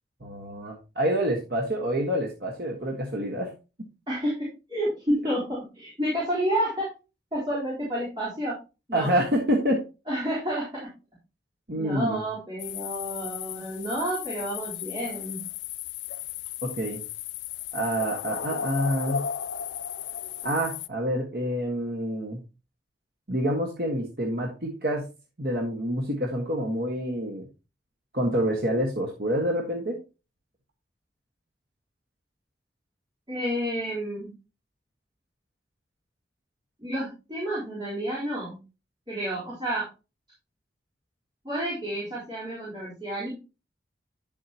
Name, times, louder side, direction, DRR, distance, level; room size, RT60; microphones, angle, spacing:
voice 1, 0.2-3.5 8.9-9.8 11.7-12.2 16.6-17.0 17.7-19.2 20.4-22.4 23.3-25.0 25.4-27.5 28.1-30.0, equal, 55° right, -1 dB, 1.5 m, -27 dB
voice 2, 4.1-6.9 7.3-8.6 8.9-9.1 10.1-10.9 11.8-15.4 33.3-34.3 36.8-38.6 39.1-39.9 41.4-43.3, equal, 25° right, -8 dB, 3.9 m, -30 dB
sound 1, 12.6-20.9, left 8 dB, 85° left, 0.4 m, -35 dB
9.8 x 7.4 x 2.9 m, 0.30 s
head